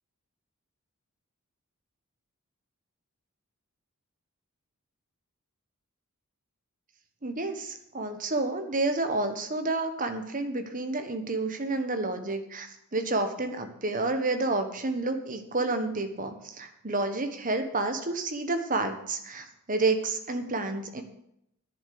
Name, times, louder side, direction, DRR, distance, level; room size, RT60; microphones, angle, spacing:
voice 1, 7.2-21.0, right 2 dB, 35° right, 7 dB, 1.4 m, -30 dB
10.5 x 7.4 x 8.5 m, 0.76 s
head